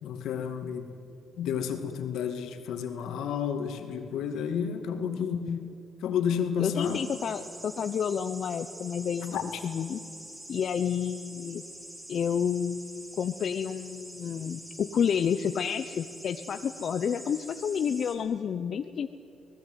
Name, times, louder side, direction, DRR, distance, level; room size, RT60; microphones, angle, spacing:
voice 1, 0.0-0.9 1.4-5.4 6.0-7.1 9.3-9.6, left 7 dB, 80° left, 6 dB, 2.3 m, -31 dB
voice 2, 5.1-5.7 6.6-10.0 10.5-11.6 12.1-19.1, left 7 dB, 55° left, 9 dB, 0.8 m, -30 dB
sound 1, 6.8-18.1, right 1 dB, 15° right, 4.8 m, -46 dB
25.0 x 18.5 x 9.3 m, 2.8 s
cardioid pair, 90°, 0 cm